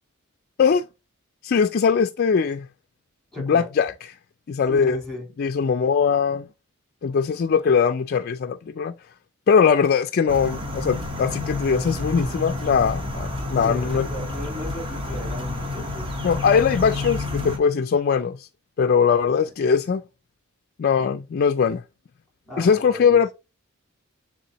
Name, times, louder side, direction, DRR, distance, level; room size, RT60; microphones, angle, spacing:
voice 1, 1.4-2.7 3.4-3.9 4.5-5.0 5.4-6.5 7.0-8.9 9.5-14.1 16.2-18.5 18.8-20.0 20.8-21.8 22.6-23.3, left 6 dB, 45° left, 0.3 m, -21 dB
voice 2, 3.3-3.7 4.7-5.3 13.6-16.0 22.4-23.2, left 2 dB, ahead, 4.0 m, -36 dB
sound 1, 10.3-17.6, left 2 dB, 25° right, 1.2 m, -29 dB
9.4 x 3.5 x 3.0 m
head